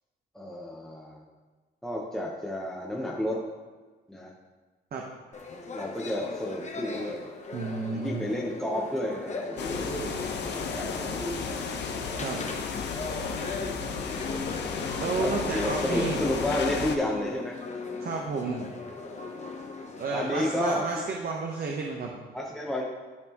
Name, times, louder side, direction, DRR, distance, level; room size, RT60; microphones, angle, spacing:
voice 1, 0.3-1.2 1.8-3.4 4.1-4.3 5.7-7.3 7.9-10.1 10.5-11.9 15.2-17.6 20.1-20.9 22.3-22.8, left 1 dB, ahead, -3 dB, 1.0 m, -31 dB
sound 1, 5.3-20.6, left 3 dB, 35° left, 1.0 m, -38 dB
voice 2, 7.5-8.3 12.2-12.4 15.0-16.2 18.0-18.6 20.0-22.2, right 4 dB, 50° right, 0 dB, 1.0 m, -31 dB
sound 2, 9.6-17.0, left 5 dB, 60° left, 0.9 m, -33 dB
12.5 x 4.2 x 3.0 m, 1.3 s
cardioid pair, 90°, 20 cm